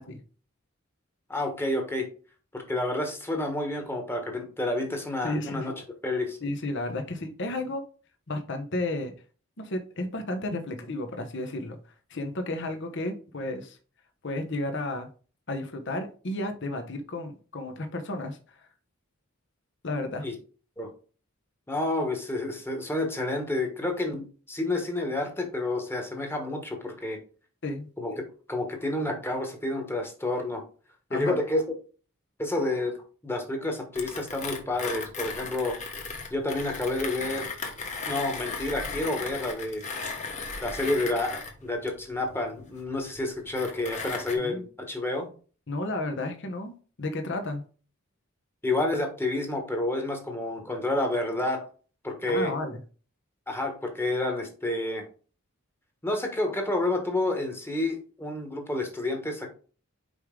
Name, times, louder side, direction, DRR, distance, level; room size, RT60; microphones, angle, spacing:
voice 1, 1.3-2.1 2.5-5.7 6.0-6.4 20.2-20.3 20.8-20.9 21.7-27.2 28.0-30.6 31.1-31.6 32.4-33.0 33.2-35.8 36.3-37.5 38.1-39.8 40.6-45.3 48.6-51.6 52.0-52.5 53.5-55.0 56.0-59.5, left 2 dB, 10° left, 3 dB, 1.3 m, -29 dB
voice 2, 5.2-5.7 6.4-7.8 8.3-9.1 9.6-11.8 12.1-13.8 14.2-15.1 15.5-18.7 19.8-20.3 27.6-27.9 31.1-31.4 44.4-44.6 45.7-47.6 52.3-52.8, left 2 dB, 60° left, 5 dB, 1.0 m, -32 dB
Mechanisms, 34.0-44.4, left 4 dB, 35° left, 1.2 m, -37 dB
5.4 x 4.8 x 3.8 m, 0.38 s
head